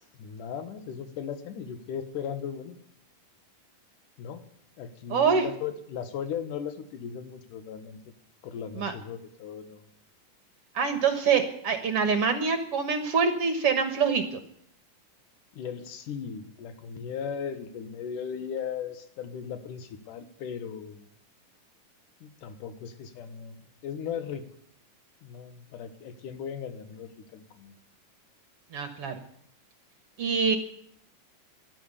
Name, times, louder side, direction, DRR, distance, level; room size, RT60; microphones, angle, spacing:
voice 1, 0.2-2.8 4.2-4.4 4.8-8.1 8.4-9.8 15.5-21.1 22.2-24.4 25.2-27.8, left 7 dB, 70° left, 9 dB, 2.9 m, -37 dB
voice 2, 5.1-5.5 8.8-8.9 10.7-14.4 28.7-29.2 30.2-30.6, right 5 dB, 55° right, 8 dB, 1.8 m, -25 dB
14.0 x 11.5 x 8.3 m, 0.66 s
omnidirectional pair, 3.9 m